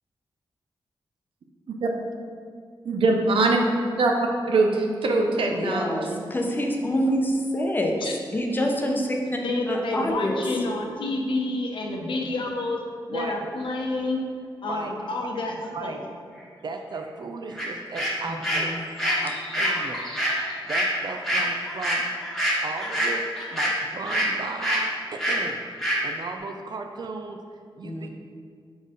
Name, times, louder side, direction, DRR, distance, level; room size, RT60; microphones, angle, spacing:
voice 1, 2.8-3.6 4.0-4.1 4.5-6.2, right 3 dB, 85° right, 0.8 m, -22 dB
voice 2, 5.5-10.3 18.2-18.8 19.3-19.4 27.8-28.1, equal, 20° left, 0.8 m, -27 dB
voice 3, 9.4-12.8 13.1-14.2 14.6-16.0, left 2 dB, 70° left, 0.9 m, -29 dB
voice 4, 16.6-18.7 19.2-20.0 20.4-22.0 22.6-23.2 23.5-25.6 26.0-27.4 27.8-28.1, right 4 dB, 55° right, 0.4 m, -36 dB
sound 1, 17.6-17.7 17.9-24.3 24.6-24.8 25.2-25.4 25.8-26.0, equal, 5° left, 1.4 m, -26 dB
4.9 x 4.4 x 5.1 m
wide cardioid pair, 115°, 9 cm